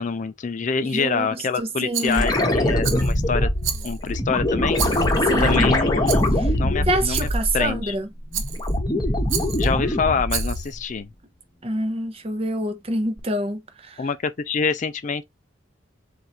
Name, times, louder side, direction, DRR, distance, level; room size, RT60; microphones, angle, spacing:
voice 1, 0.0-3.5 3.8-4.8 5.4-7.3 7.5-7.9 9.6-11.1 14.0-15.2, left 5 dB, 40° left, 0.4 m, -26 dB
voice 2, 0.9-2.3 5.2-5.7 6.4-6.5 6.9-8.1 11.6-14.1, right 1 dB, 30° right, 0.8 m, -26 dB
Rattle, 1.9-2.4 2.8-3.2 3.6-4.2 4.7-5.3 6.1-6.4 7.1-7.5 8.3-8.8 9.3-9.7 10.3-10.7, right 9 dB, 85° right, 0.8 m, -31 dB
sound 1, 2.1-7.9 8.2-10.8 13.2-13.3, left 1 dB, 20° left, 1.0 m, -22 dB
3.9 x 2.6 x 4.3 m
head